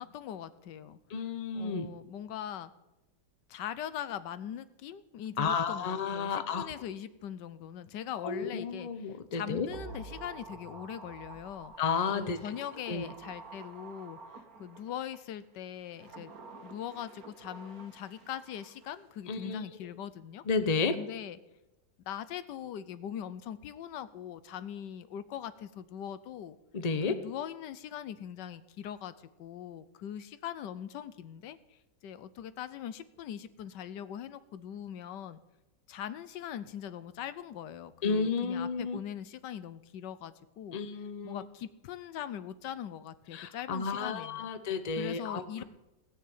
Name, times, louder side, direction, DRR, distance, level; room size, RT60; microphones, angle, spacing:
voice 1, 0.0-1.2 1.5-2.7 3.5-11.7 12.1-14.2 14.6-16.3 16.6-20.4 20.9-21.4 22.0-26.6 27.1-35.4 35.9-40.8 41.2-44.5 44.9-45.6, left 10 dB, 90° left, 14 dB, 1.4 m, -41 dB
voice 2, 1.1-1.9 5.4-6.7 8.2-9.7 11.8-12.4 12.9-13.1 19.3-19.6 20.5-21.0 26.7-27.2 38.0-39.0 40.7-41.4 43.3-45.6, left 5 dB, 30° left, 10 dB, 0.7 m, -32 dB
sound 1, 9.7-15.2 15.8-19.0 19.3-19.4, right 3 dB, 60° right, 1.8 m, -49 dB
17.0 x 6.6 x 8.7 m, 0.95 s
omnidirectional pair, 1.8 m